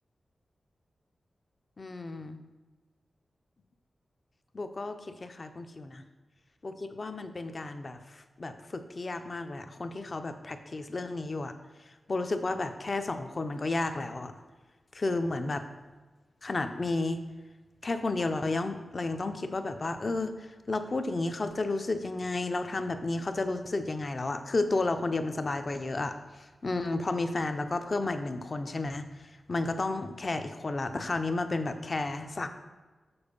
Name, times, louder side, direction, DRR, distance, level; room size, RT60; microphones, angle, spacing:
voice 1, 1.8-2.4 4.5-6.0 6.6-11.5 12.1-14.3 14.9-15.6 16.4-17.2 17.8-29.1 29.5-32.5, left 2 dB, 35° left, 8 dB, 0.5 m, -32 dB
6.9 x 4.4 x 5.3 m, 1.3 s
wide cardioid pair, 170°, 0 cm